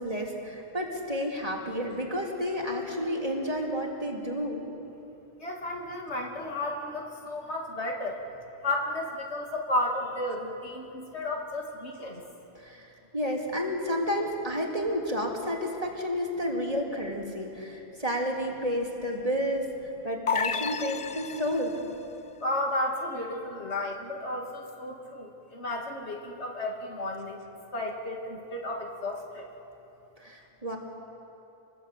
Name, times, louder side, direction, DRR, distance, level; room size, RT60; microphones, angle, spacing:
voice 1, 0.0-4.6 12.5-19.7 20.0-21.8 30.2-30.8, equal, 35° right, -1 dB, 3.3 m, -31 dB
voice 2, 5.4-8.2 8.6-12.2 22.4-27.4 27.7-29.5, left 1 dB, 85° left, 0 dB, 2.8 m, -33 dB
sound 1, 20.3-21.9, left 6 dB, 35° left, 0.6 m, -31 dB
27.5 x 20.5 x 8.5 m, 3.0 s
omnidirectional pair, 1.1 m